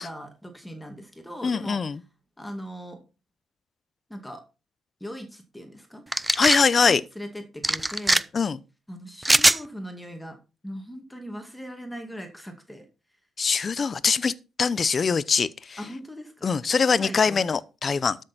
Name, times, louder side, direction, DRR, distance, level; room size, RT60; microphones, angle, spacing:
voice 1, 0.0-1.8 2.4-3.0 4.1-4.4 5.0-6.0 6.8-8.2 8.9-10.4 10.6-12.9 15.8-16.5 16.8-17.4, equal, 5° left, 2.1 m, -39 dB
voice 2, 1.4-2.0 6.3-7.0 8.3-8.6 13.4-15.8 16.4-18.2, left 5 dB, 40° left, 0.7 m, -23 dB
sound 1, 6.1-6.6 7.6-8.2 9.2-9.6, right 1 dB, 10° right, 0.5 m, -20 dB
12.5 x 6.5 x 4.3 m
cardioid pair, 90°, 0 cm